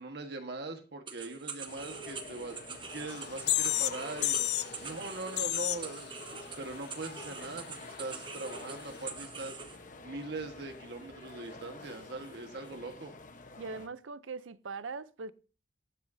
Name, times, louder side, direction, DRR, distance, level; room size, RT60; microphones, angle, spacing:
voice 1, 0.0-4.4 4.8-13.1, right 2 dB, 60° right, 1.4 m, -41 dB
sound 1, 1.1-9.8, right 5 dB, 25° right, 1.0 m, -44 dB
sound 2, 1.7-13.9, left 3 dB, 45° left, 1.0 m, -49 dB
sound 3, 3.1-3.2 3.5-4.0 4.2-4.7 5.4-5.8, left 14 dB, 60° left, 0.5 m, -29 dB
voice 2, 13.6-15.3, right 4 dB, 85° right, 0.6 m, -41 dB
13.5 x 10.5 x 2.7 m
head